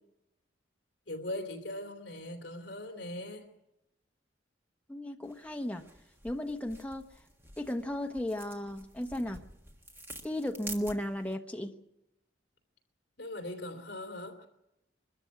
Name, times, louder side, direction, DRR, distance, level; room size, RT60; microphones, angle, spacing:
voice 1, 1.1-3.5 13.2-14.5, left 1 dB, 60° left, 3.1 m, -40 dB
voice 2, 4.9-5.8 6.2-7.0 7.6-9.4 10.2-11.7, left 1 dB, 10° left, 1.1 m, -35 dB
sound 1, 5.2-11.4, right 1 dB, 10° right, 1.6 m, -49 dB
23.0 x 13.5 x 9.5 m
head